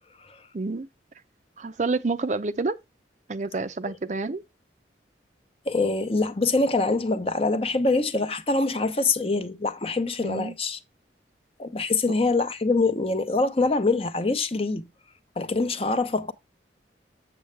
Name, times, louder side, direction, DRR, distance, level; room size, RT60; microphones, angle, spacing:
voice 1, 0.5-0.9 1.6-2.8 3.3-4.4 10.2-10.5, right 3 dB, 40° right, 0.6 m, -28 dB
voice 2, 5.7-10.8 11.6-14.9 15.4-16.3, left 3 dB, 30° left, 0.7 m, -24 dB
7.9 x 7.4 x 3.2 m
head